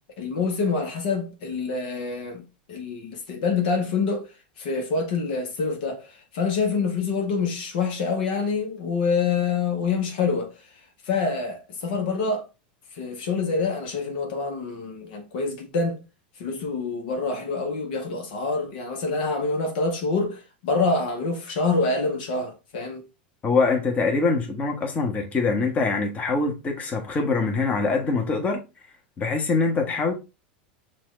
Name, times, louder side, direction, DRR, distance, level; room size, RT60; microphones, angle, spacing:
voice 1, 0.2-4.3 4.6-10.5 11.0-12.4 12.9-16.0 16.4-23.0, left 4 dB, 65° left, 1.1 m, -26 dB
voice 2, 23.4-28.6 29.2-30.1, left 4 dB, 30° left, 1.2 m, -24 dB
6.0 x 2.5 x 3.2 m
hypercardioid pair, 100°, 5 cm